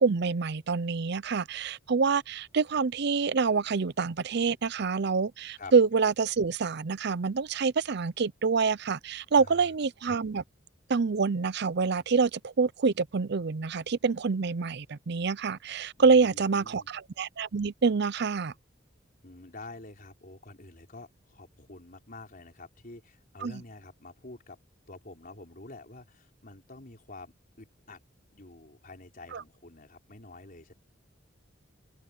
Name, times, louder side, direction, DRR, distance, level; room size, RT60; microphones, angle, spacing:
voice 1, 0.0-10.4 10.9-18.5 23.4-23.6 29.3-29.4, right 5 dB, 60° right, 0.6 m, -26 dB
voice 2, 9.4-9.7 16.0-16.9 19.2-24.6 24.9-28.0 28.3-30.7, left 2 dB, 50° left, 4.3 m, -48 dB
head